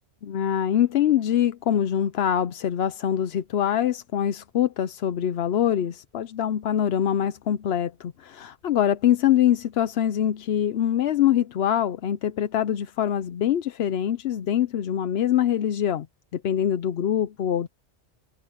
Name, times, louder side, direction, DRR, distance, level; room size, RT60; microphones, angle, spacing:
voice 1, 0.2-16.1 16.3-17.7, left 10 dB, 65° left, 0.9 m, -24 dB
omnidirectional pair, 1.2 m